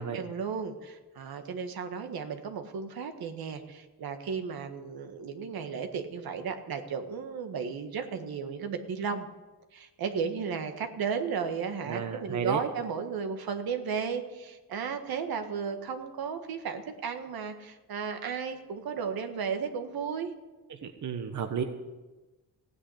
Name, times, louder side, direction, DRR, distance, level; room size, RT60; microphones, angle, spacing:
voice 1, 0.0-9.3 9.7-20.3, right 6 dB, 75° right, 6 dB, 1.7 m, -34 dB
voice 2, 11.9-12.6 20.7-21.6, right 6 dB, 50° right, 6 dB, 1.2 m, -32 dB
16.0 x 9.7 x 8.4 m, 1.2 s
cardioid pair, 110°, 37 cm